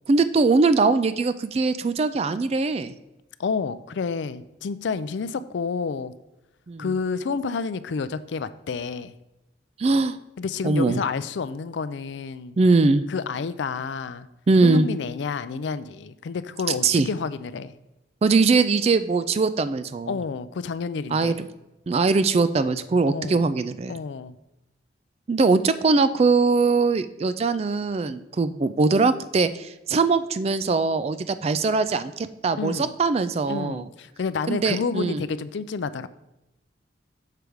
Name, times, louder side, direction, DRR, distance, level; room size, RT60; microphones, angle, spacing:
voice 1, 0.1-2.9 6.7-6.9 9.8-10.2 10.6-11.0 12.6-13.0 14.5-14.9 16.7-17.1 18.2-20.2 21.1-21.3 21.9-23.9 25.3-33.9 34.5-35.2, right 4 dB, 35° right, 13 dB, 0.3 m, -21 dB
voice 2, 3.4-6.1 6.8-9.1 10.4-12.6 13.1-14.3 14.6-17.7 20.1-21.4 23.1-23.5 23.9-24.3 32.6-32.9 33.5-36.1, left 5 dB, 70° left, 14 dB, 0.4 m, -29 dB
6.7 x 4.6 x 4.9 m, 0.95 s
head